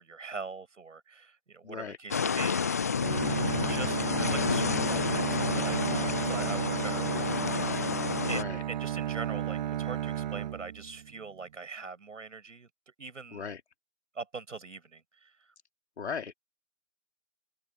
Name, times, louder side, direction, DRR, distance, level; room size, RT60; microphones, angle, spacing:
voice 1, 0.0-2.8 3.6-8.0 8.3-8.4 8.7-12.7 13.0-13.5 14.1-15.5, right 4 dB, 65° right, 7.2 m, -42 dB
voice 2, 1.6-2.0 8.3-8.6 13.3-13.6 16.0-16.3, left 6 dB, 55° left, 3.3 m, -37 dB
sound 1, 2.1-8.4, left 6 dB, 10° left, 0.6 m, -30 dB
Bowed string instrument, 3.0-11.2, right 11 dB, 30° right, 2.3 m, -33 dB
open air
figure-of-eight pair, 145°, 40 cm